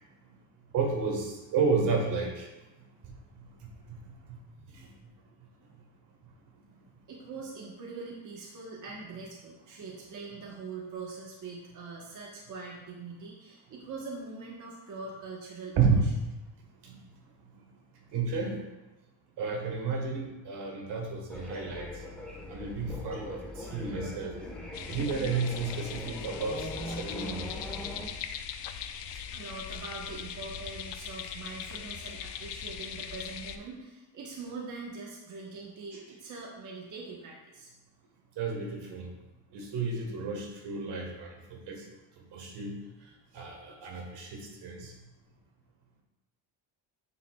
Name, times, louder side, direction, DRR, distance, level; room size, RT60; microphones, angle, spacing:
voice 1, 0.7-2.5 4.8-4.9 15.7-16.0 16.8-16.9 18.1-18.6 19.4-21.9 22.5-24.3 24.9-27.5 38.4-39.1 39.5-41.8 42.3-42.8 43.3-44.9, right 4 dB, 65° right, 1 dB, 1.7 m, -31 dB
voice 2, 7.1-16.1 29.3-37.7, right 4 dB, 45° right, -3 dB, 1.3 m, -43 dB
sound 1, 21.3-28.1, left 1 dB, 5° left, 1.4 m, -41 dB
sound 2, 24.7-33.6, left 9 dB, 70° left, 0.6 m, -40 dB
9.3 x 6.3 x 2.4 m, 1.0 s
cardioid pair, 145°, 44 cm